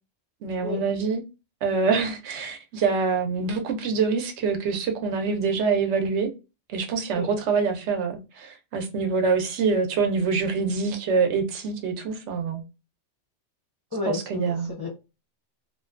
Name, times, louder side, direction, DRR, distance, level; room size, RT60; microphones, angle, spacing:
voice 1, 0.4-1.2 1.6-6.3 6.7-12.6 14.1-14.7, right 5 dB, 75° right, 0.9 m, -25 dB
voice 2, 13.9-14.9, left 3 dB, 30° left, 0.4 m, -32 dB
2.5 x 2.1 x 2.3 m
omnidirectional pair, 1.2 m